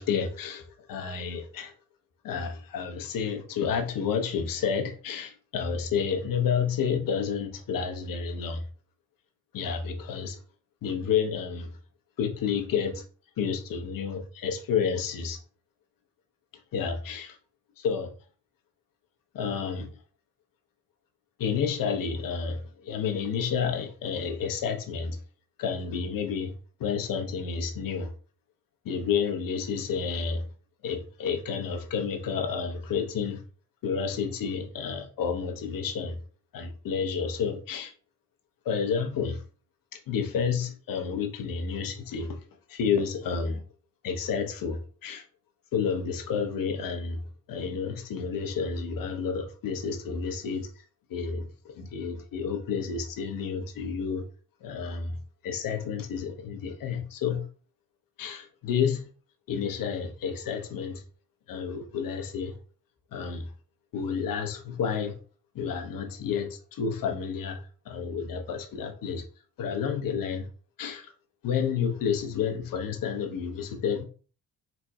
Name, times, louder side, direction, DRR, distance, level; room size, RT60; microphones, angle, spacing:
voice 1, 0.0-1.7 2.2-8.6 9.5-10.4 10.8-11.7 12.2-13.0 13.4-15.4 16.7-17.4 17.8-18.1 19.3-20.0 21.4-25.2 25.6-26.5 26.8-28.1 28.8-30.5 30.8-33.4 33.8-36.2 36.5-37.9 38.6-39.4 39.9-42.4 42.7-43.6 44.0-45.3 45.7-47.2 47.5-50.8 51.1-54.2 54.6-55.2 55.4-57.5 58.2-59.1 59.5-61.0 61.5-62.6 63.1-63.5 63.9-65.2 65.5-69.2 69.6-70.5 70.8-71.1 71.4-74.0, left 6 dB, 45° left, 1.0 m, -30 dB
4.3 x 4.0 x 2.3 m
figure-of-eight pair, 45°, 47 cm